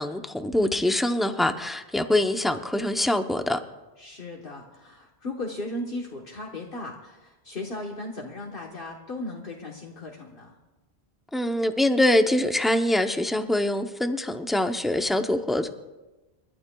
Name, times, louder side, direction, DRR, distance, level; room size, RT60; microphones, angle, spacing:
voice 1, 0.0-3.6 11.3-15.7, left 1 dB, ahead, 6 dB, 0.5 m, -24 dB
voice 2, 4.0-10.5, left 2 dB, 60° left, -1 dB, 1.4 m, -36 dB
29.0 x 12.0 x 2.3 m, 1.1 s
omnidirectional pair, 1.1 m